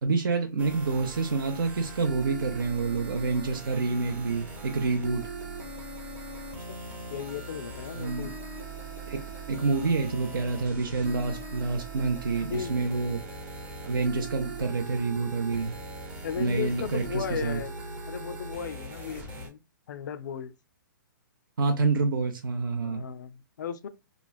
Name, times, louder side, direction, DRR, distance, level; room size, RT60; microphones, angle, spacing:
voice 1, 0.0-5.3 7.9-8.3 9.1-9.2 9.5-13.2 13.8-15.7 16.4-17.6 21.6-23.1, right 4 dB, 80° right, 0.5 m, -28 dB
sound 1, 0.6-19.5, right 2 dB, 10° right, 0.5 m, -40 dB
voice 2, 7.1-8.4 12.4-12.8 16.2-17.7 18.1-19.6 19.9-20.5 22.8-23.9, left 8 dB, 60° left, 0.4 m, -36 dB
3.0 x 2.4 x 2.3 m
hypercardioid pair, 160°, 11 cm